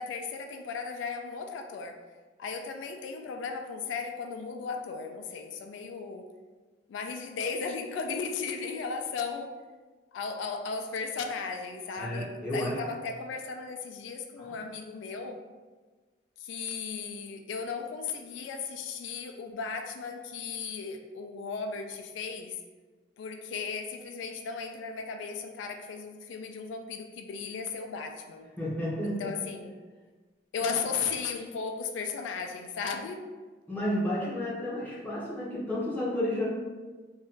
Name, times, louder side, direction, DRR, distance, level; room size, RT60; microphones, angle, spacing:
voice 1, 0.0-2.0 2.4-6.2 6.9-9.5 10.1-15.4 16.4-22.6 23.2-28.5 29.0-29.7 30.5-33.2, left 5 dB, 90° left, 5 dB, 0.3 m, -36 dB
voice 2, 12.0-12.8 14.4-14.6 28.6-29.4 30.6-30.7 33.7-36.5, left 1 dB, 10° left, -7 dB, 0.7 m, -32 dB
2.5 x 2.2 x 3.6 m, 1.3 s
head